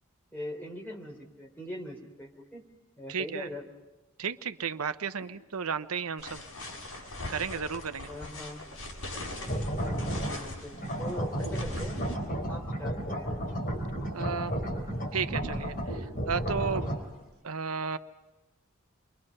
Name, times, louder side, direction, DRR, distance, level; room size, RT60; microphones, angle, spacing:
voice 1, 0.3-2.6 3.0-3.6 5.2-5.3 8.1-8.8 9.7-10.0 10.3-13.3, equal, 10° left, -1 dB, 4.0 m, -42 dB
voice 2, 3.1-3.5 4.2-6.4 7.3-8.1 14.1-14.5 15.1-16.9 17.4-18.0, right 6 dB, 85° right, 11 dB, 0.8 m, -33 dB
sound 1, 6.2-12.1, left 1 dB, 80° left, 6.3 m, -41 dB
sound 2, 9.4-10.4 10.7-17.0, equal, 40° left, 4.1 m, -33 dB
29.5 x 23.5 x 5.5 m, 1.0 s
head